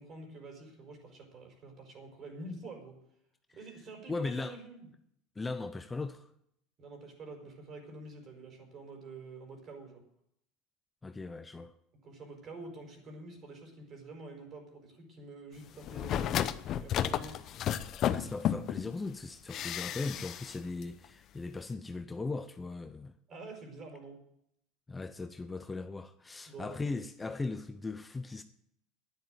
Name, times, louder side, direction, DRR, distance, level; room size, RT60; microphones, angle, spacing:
voice 1, 0.0-3.0 3.5-4.9 6.8-10.0 12.0-17.4 23.3-24.2 26.5-26.8, right 2 dB, 40° right, 5.0 m, -47 dB
voice 2, 4.1-4.6 5.4-6.3 11.0-11.7 18.1-23.1 24.9-28.4, left 3 dB, 15° left, 0.7 m, -38 dB
sound 1, 15.8-18.9 19.5-20.6 20.8-20.9, left 10 dB, 50° left, 0.7 m, -32 dB
10.5 x 9.2 x 9.4 m
supercardioid pair, 105°, 0 cm